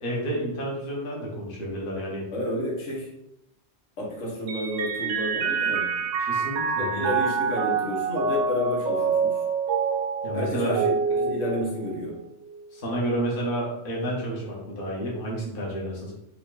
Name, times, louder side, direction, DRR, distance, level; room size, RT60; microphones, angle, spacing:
voice 1, 0.0-2.3 6.2-7.1 10.2-10.8 12.7-16.1, right 1 dB, 50° left, -3 dB, 1.3 m, -30 dB
voice 2, 2.3-3.1 4.0-5.9 6.8-9.4 10.3-12.2, left 1 dB, 85° left, -3 dB, 1.6 m, -30 dB
Mallet percussion, 4.5-12.2, right 5 dB, 75° right, 1.0 m, -26 dB
5.6 x 2.4 x 3.8 m, 0.82 s
omnidirectional pair, 1.2 m